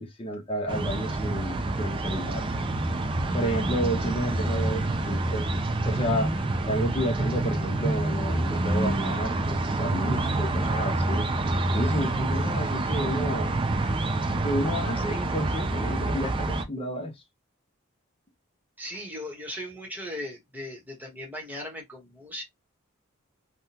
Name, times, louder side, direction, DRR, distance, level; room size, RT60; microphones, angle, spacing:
voice 1, 0.0-2.5 3.3-5.5 5.8-6.3 6.7-11.3 11.7-13.5 14.4-17.1, equal, 25° left, 0.7 m, -31 dB
sound 1, 0.7-16.6, right 2 dB, 25° right, 0.4 m, -27 dB
voice 2, 18.8-22.4, left 1 dB, 10° right, 1.1 m, -38 dB
3.5 x 2.2 x 2.8 m
head